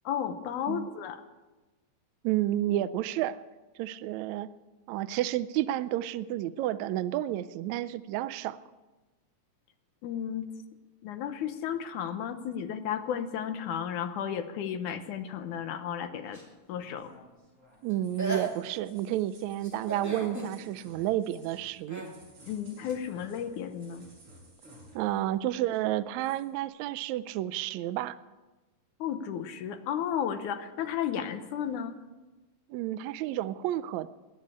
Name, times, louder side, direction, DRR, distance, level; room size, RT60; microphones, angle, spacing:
voice 1, 0.1-1.2 10.0-10.5 11.0-16.4 16.7-17.1 22.5-24.1 29.0-32.0, left 8 dB, 75° left, 9 dB, 2.3 m, -33 dB
voice 2, 2.2-3.4 3.7-4.5 4.9-8.6 17.8-22.0 24.9-28.2 32.7-34.1, right 13 dB, 85° right, 14 dB, 1.6 m, -31 dB
sound 1, 16.3-17.0 17.9-18.0 18.2-18.9 19.6-20.5 21.9-22.1 22.9-23.0, right 2 dB, 5° right, 1.7 m, -37 dB
sound 2, 16.3-25.4 25.6-26.5, right 1 dB, 40° right, 7.1 m, -56 dB
20.0 x 7.4 x 8.6 m, 1.2 s
omnidirectional pair, 3.8 m